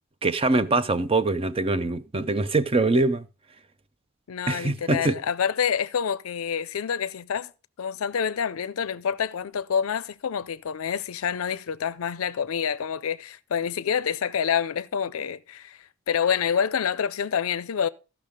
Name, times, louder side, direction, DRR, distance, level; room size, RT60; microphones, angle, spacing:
voice 1, 0.2-3.3 4.5-5.2, right 2 dB, 25° right, 0.5 m, -23 dB
voice 2, 4.3-7.5 7.8-15.8 16.1-17.9, left 7 dB, 80° left, 0.4 m, -27 dB
14.0 x 6.0 x 5.0 m
head